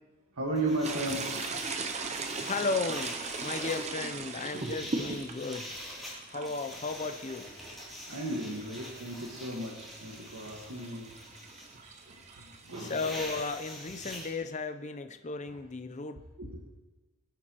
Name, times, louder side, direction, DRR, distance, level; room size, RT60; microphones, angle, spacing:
voice 1, 0.3-1.4 2.0-2.1 8.1-11.2 11.7-13.0 15.5-15.6 16.4-16.5, right 2 dB, 80° right, -3 dB, 1.7 m, -35 dB
sound 1, 0.6-14.3, left 1 dB, ahead, 3.7 m, -45 dB
sound 2, 0.8-12.9, right 4 dB, 30° right, 0.6 m, -39 dB
voice 2, 2.4-5.8 6.3-7.5 12.8-16.2, left 3 dB, 35° left, 8 dB, 0.6 m, -35 dB
20.5 x 9.1 x 3.0 m, 1.2 s
head